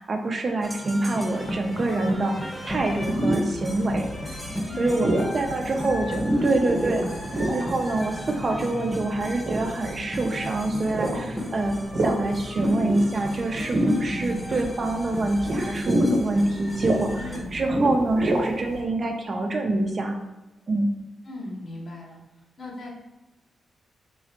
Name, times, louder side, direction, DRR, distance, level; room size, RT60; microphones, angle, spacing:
voice 1, 0.0-2.4 2.6-4.1 4.8-5.1 5.3-7.0 7.5-11.8 12.0-20.2 20.7-20.9, right 2 dB, 50° right, 3 dB, 0.6 m, -26 dB
sound 1, 0.6-17.4, equal, 10° left, 1.0 m, -35 dB
sound 2, 2.7-18.8, right 1 dB, 75° right, 0.9 m, -29 dB
voice 2, 4.7-6.2 6.7-7.1 14.0-14.5 17.2-17.8 21.2-22.2 22.6-22.9, left 1 dB, 60° left, -2 dB, 1.3 m, -38 dB
3.8 x 3.1 x 2.9 m, 1.1 s
supercardioid pair, 50°, 0 cm